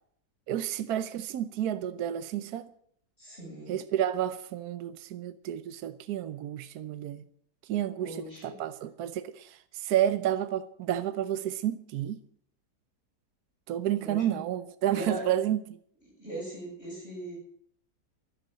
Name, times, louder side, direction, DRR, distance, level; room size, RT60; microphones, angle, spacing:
voice 1, 0.5-2.7 3.7-7.2 7.7-12.2 13.7-15.8, right 11 dB, 75° right, 1.2 m, -31 dB
voice 2, 3.2-3.8 8.0-8.5 14.0-14.4 14.9-15.2 16.2-17.4, right 1 dB, 40° left, 7.5 m, -39 dB
12.0 x 11.5 x 7.7 m
omnidirectional pair, 1.7 m